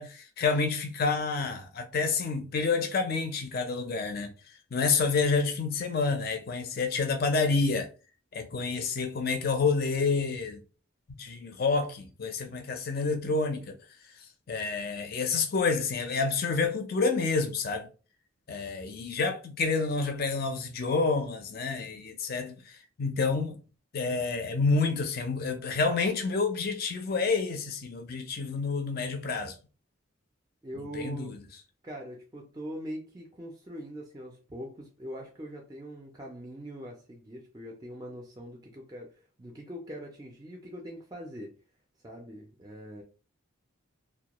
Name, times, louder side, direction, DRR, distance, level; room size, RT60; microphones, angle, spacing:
voice 1, 0.0-4.3 4.7-7.9 8.3-10.6 11.2-13.7 14.5-17.9 18.5-23.6 23.9-29.5 30.8-31.4, left 4 dB, 45° left, 0.4 m, -28 dB
voice 2, 30.6-31.3 31.8-41.5 42.0-43.0, equal, 20° right, 0.3 m, -42 dB
2.2 x 2.2 x 2.9 m
head